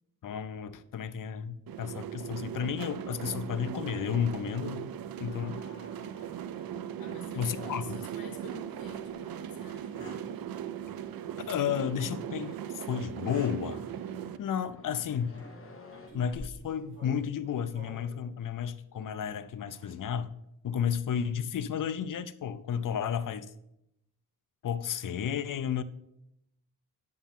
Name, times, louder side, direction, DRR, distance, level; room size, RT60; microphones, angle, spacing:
voice 1, 0.2-4.9 5.2-5.6 7.3-8.0 11.5-13.8 14.4-15.4 16.1-20.3 20.6-23.5 24.6-25.8, left 8 dB, 65° left, 0.5 m, -32 dB
sound 1, 1.7-14.4, right 10 dB, 85° right, 0.5 m, -39 dB
sound 2, 5.1-16.1, left 3 dB, 40° left, 1.2 m, -56 dB
voice 2, 7.0-9.9, left 4 dB, 85° left, 1.4 m, -48 dB
sound 3, 7.5-8.6 9.0-9.1 9.7-10.3 11.6-11.9 13.1-13.6 14.1-14.3 15.2-15.5 15.9-18.2 19.7-19.9 20.9-21.2, equal, 35° right, 3.4 m, -48 dB
9.7 x 6.9 x 3.6 m
wide cardioid pair, 140°, 34 cm